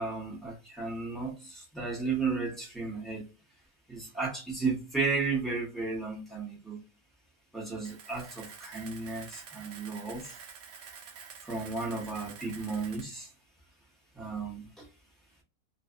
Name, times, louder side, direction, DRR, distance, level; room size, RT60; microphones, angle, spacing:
voice 1, 0.0-3.2 3.9-6.8 7.5-10.3 11.4-13.3 14.2-14.8, right 4 dB, ahead, 0.6 m, -34 dB
Camera, 7.8-13.0, right 6 dB, 70° right, 0.8 m, -48 dB
2.5 x 2.4 x 2.3 m
omnidirectional pair, 1.6 m